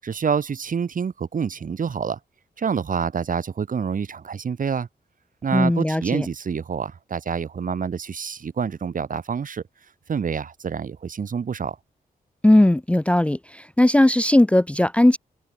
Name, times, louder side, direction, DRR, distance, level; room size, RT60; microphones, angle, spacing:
voice 1, 0.0-2.2 2.6-4.9 5.4-9.6 10.1-11.8, right 6 dB, 60° right, 6.7 m, -27 dB
voice 2, 5.5-6.3 12.4-15.2, left 1 dB, 10° left, 0.6 m, -18 dB
open air
wide cardioid pair, 120°, 16 cm